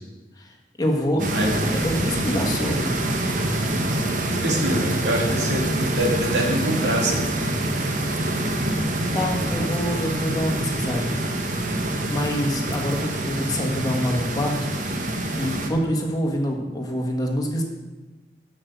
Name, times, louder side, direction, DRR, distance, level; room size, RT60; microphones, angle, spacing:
voice 1, 0.4-1.2 1.6-2.9 9.1-11.1 11.9-14.7 15.3-17.6, equal, 20° left, 0 dB, 1.4 m, -26 dB
sound 1, 1.2-15.7, right 1 dB, 45° right, 1.1 m, -26 dB
voice 2, 1.2-1.5 4.4-7.3, right 1 dB, 85° right, -1 dB, 2.6 m, -24 dB
8.6 x 6.5 x 8.0 m, 1.2 s
head